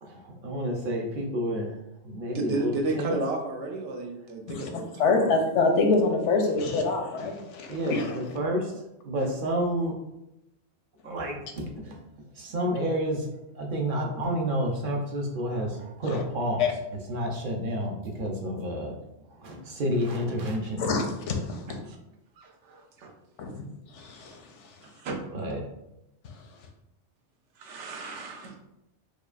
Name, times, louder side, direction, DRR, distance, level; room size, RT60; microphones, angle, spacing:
voice 1, 0.0-1.8 2.0-3.1 7.7-10.0 11.0-12.0 12.3-13.3 13.5-16.7 17.1-19.0 19.4-20.8 25.3-25.6, equal, 55° right, 1 dB, 0.7 m, -30 dB
voice 2, 2.3-5.4 21.7-22.0 22.4-23.1 24.8-25.2 27.6-28.6, right 3 dB, 85° right, 3 dB, 0.9 m, -33 dB
voice 3, 4.5-8.2 16.0-16.2 16.6-16.7 20.8-21.6 23.4-23.5 23.9-24.4, left 3 dB, 90° left, 4 dB, 1.0 m, -26 dB
4.8 x 2.3 x 2.4 m, 0.88 s
omnidirectional pair, 1.2 m